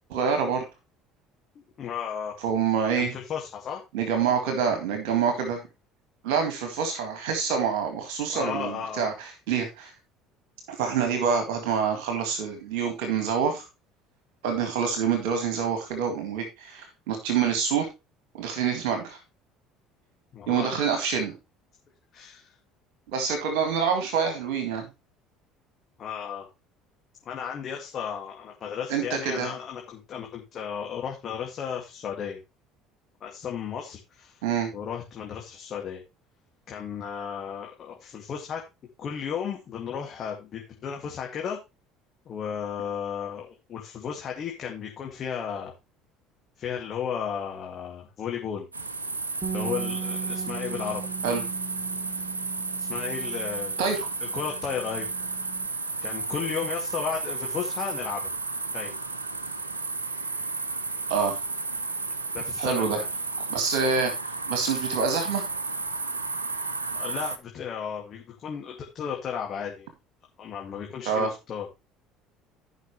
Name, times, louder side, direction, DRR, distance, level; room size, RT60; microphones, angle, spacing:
voice 1, 0.1-0.6 2.4-3.1 3.9-5.6 6.2-9.9 10.7-13.6 14.4-17.9 18.3-19.2 20.5-21.3 23.1-24.9 28.9-29.5 34.4-34.7 51.2-51.4 53.8-54.1 61.1-61.4 62.6-63.0 63.5-64.1 64.5-65.5 71.1-71.3, right 6 dB, 65° right, 6 dB, 2.1 m, -26 dB
voice 2, 1.8-2.4 3.0-3.8 8.3-9.1 20.3-20.7 22.1-22.5 26.0-26.5 27.3-32.4 33.2-34.4 34.7-36.0 36.7-38.6 39.0-41.6 42.3-45.7 46.6-48.7 49.5-51.0 52.8-53.9 54.2-55.1 56.0-58.2 58.7-58.9 62.3-63.1 66.9-69.9 70.4-71.7, left 7 dB, 45° left, 0 dB, 2.1 m, -34 dB
sound 1, 48.7-67.4, right 3 dB, 90° right, 0.7 m, -32 dB
Bass guitar, 49.4-55.7, right 7 dB, 20° right, 2.0 m, -38 dB
14.5 x 5.8 x 3.2 m, 0.25 s
figure-of-eight pair, 60°, 0 cm